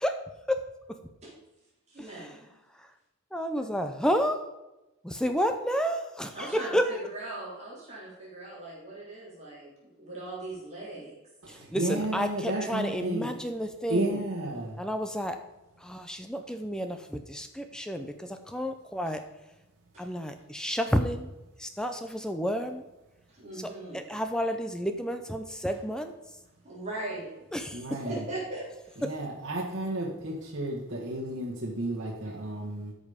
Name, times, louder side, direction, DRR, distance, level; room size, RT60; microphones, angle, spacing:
voice 1, 1.9-2.5 6.3-11.2 12.5-12.7 19.0-19.2 19.9-20.1 23.3-24.0 25.7-25.8 26.6-27.3 27.8-29.0 32.2-32.5, right 2 dB, 30° right, -6 dB, 3.7 m, -40 dB
voice 2, 3.3-4.4 5.0-6.8 11.7-14.2 14.8-15.4 15.8-19.2 20.0-21.3 21.6-22.8 23.9-26.1 27.5-27.7, equal, 5° left, 7 dB, 0.6 m, -30 dB
voice 3, 11.4-13.3 13.9-14.8 27.7-28.2 29.0-32.9, right 1 dB, 60° right, -5 dB, 1.7 m, -32 dB
13.0 x 5.5 x 5.2 m, 1.0 s
head